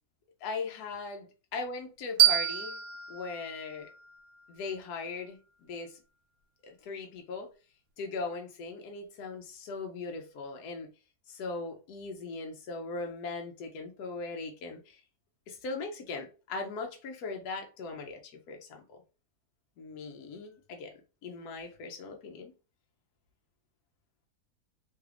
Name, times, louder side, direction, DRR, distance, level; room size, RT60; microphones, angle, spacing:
voice 1, 0.4-1.2 1.5-2.8 3.1-3.9 4.5-6.0 6.6-7.5 8.0-10.9 11.3-15.0 15.5-19.0 19.8-20.9 21.2-22.5, left 4 dB, 80° left, 1.1 m, -39 dB
sound 1, 2.2-5.0, right 12 dB, 75° right, 1.1 m, -29 dB
3.1 x 2.4 x 3.3 m
omnidirectional pair, 1.7 m